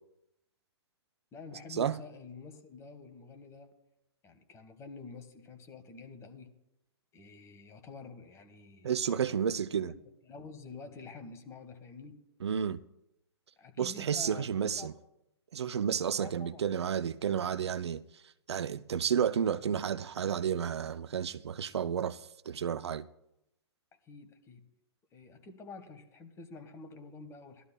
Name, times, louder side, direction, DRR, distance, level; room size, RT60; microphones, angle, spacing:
voice 1, 1.3-3.7 4.2-6.5 7.1-9.5 9.9-12.2 13.6-14.9 16.2-16.7 24.0-24.6 25.1-27.6, left 4 dB, 20° left, 1.4 m, -48 dB
voice 2, 8.8-9.9 12.4-12.8 13.8-14.9 15.5-18.0 18.5-23.1, right 8 dB, 75° right, 0.5 m, -31 dB
18.5 x 12.5 x 2.3 m
hypercardioid pair, 120°, 14 cm